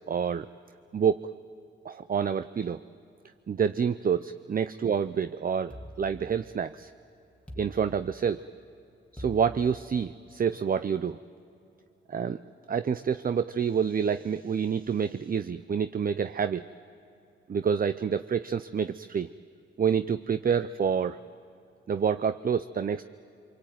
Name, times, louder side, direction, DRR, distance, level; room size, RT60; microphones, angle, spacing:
voice 1, 0.1-0.5 0.9-1.2 1.8-2.8 3.5-6.9 7.6-8.4 9.1-11.2 12.1-12.4 12.7-16.6 17.5-19.3 19.8-21.2 21.9-23.0, right 7 dB, 45° right, 13 dB, 0.6 m, -28 dB
sound 1, 5.7-6.8 7.5-8.5 9.2-10.3, equal, 5° left, 2.3 m, -45 dB
25.0 x 23.5 x 9.2 m, 2.7 s
cardioid pair, 70°, 21 cm